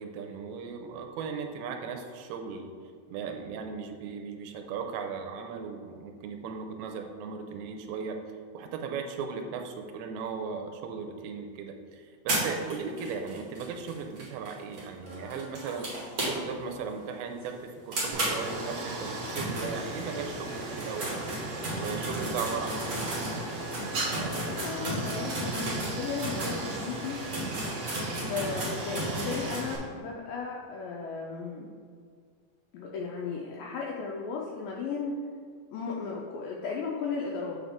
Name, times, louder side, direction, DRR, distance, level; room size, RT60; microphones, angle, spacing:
voice 1, 0.0-2.7 3.1-8.2 8.5-15.9 16.2-21.2 21.8-22.8, right 5 dB, 85° right, 4 dB, 2.6 m, -37 dB
sound 1, 12.3-16.7 17.0-17.1 17.4-17.5 17.9-20.2 20.7-26.6 27.0-27.1 27.3-29.7, right 1 dB, 45° right, 1.2 m, -34 dB
Stream, 18.1-29.8, right 2 dB, 70° right, 1.3 m, -37 dB
voice 2, 24.5-27.2 28.3-31.7 32.7-35.2 35.7-37.6, left 5 dB, 80° left, -2 dB, 2.1 m, -35 dB
7.1 x 5.3 x 3.6 m, 2.1 s
omnidirectional pair, 4.4 m